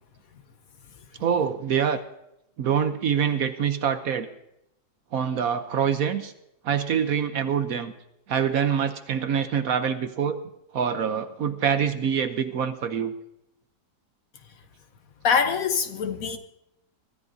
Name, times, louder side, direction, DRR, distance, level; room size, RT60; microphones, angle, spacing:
voice 1, 1.2-2.0 2.6-4.3 5.1-6.3 6.6-7.9 8.3-10.4 10.7-13.1, right 7 dB, 65° right, 1.1 m, -25 dB
voice 2, 15.2-16.4, left 6 dB, 60° left, 1.2 m, -23 dB
24.0 x 13.5 x 2.7 m
omnidirectional pair, 1.9 m